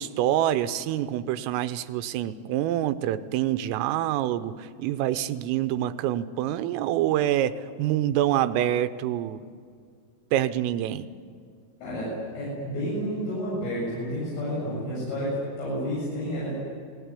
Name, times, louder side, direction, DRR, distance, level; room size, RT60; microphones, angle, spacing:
voice 1, 0.0-7.5 7.8-9.4 10.3-11.1, right 12 dB, 85° right, 12 dB, 3.5 m, -26 dB
voice 2, 11.8-16.5, equal, 70° left, -7 dB, 10.0 m, -30 dB
28.0 x 19.5 x 9.9 m, 2.1 s
omnidirectional pair, 5.9 m